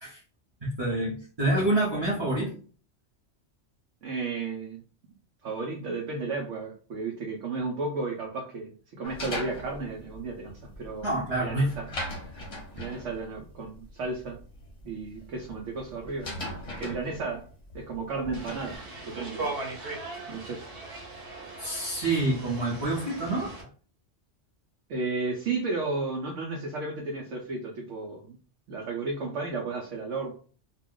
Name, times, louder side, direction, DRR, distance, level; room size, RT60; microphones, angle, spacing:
voice 1, 0.6-2.5 11.0-11.7 21.6-23.5, right 2 dB, 25° right, -6 dB, 0.7 m, -27 dB
voice 2, 4.0-4.8 5.4-11.1 11.4-11.9 12.7-14.4 14.8-16.3 16.8-17.5 17.7-18.8 19.1-20.7 24.9-28.4 28.7-30.3, right 3 dB, 80° right, 0 dB, 1.0 m, -33 dB
sound 1, 9.0-18.8, left 1 dB, 35° left, 0.6 m, -40 dB
sound 2, 18.3-23.6, right 2 dB, 55° right, 1.1 m, -39 dB
2.4 x 2.2 x 3.6 m, 0.40 s
omnidirectional pair, 1.2 m